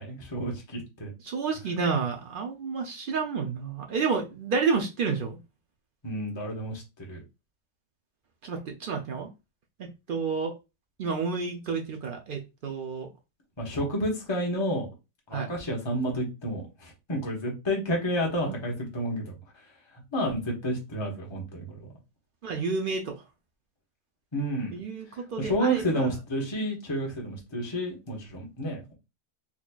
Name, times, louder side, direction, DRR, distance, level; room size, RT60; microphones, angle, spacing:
voice 1, 0.0-1.1 6.0-7.2 13.6-14.9 15.3-19.4 20.1-21.7 24.3-24.8 25.4-28.9, equal, 20° left, 1.0 m, -30 dB
voice 2, 1.2-5.4 8.4-9.3 9.8-10.5 11.0-13.1 15.3-15.5 22.4-23.2 24.7-26.1, right 5 dB, 70° right, 0.5 m, -30 dB
4.1 x 2.9 x 2.3 m
omnidirectional pair, 1.5 m